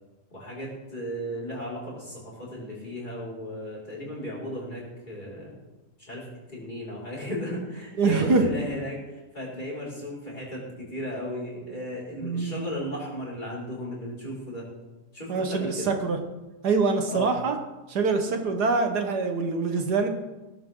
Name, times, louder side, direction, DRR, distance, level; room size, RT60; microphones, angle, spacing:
voice 1, 0.3-5.5 6.0-14.7 15.1-16.0 17.1-17.4, equal, 25° left, -6 dB, 5.6 m, -35 dB
voice 2, 8.0-8.5 12.2-12.6 15.3-16.2 16.6-17.6 17.9-20.1, right 4 dB, 75° right, 4 dB, 1.9 m, -24 dB
18.5 x 13.0 x 3.8 m, 1.1 s
omnidirectional pair, 1.8 m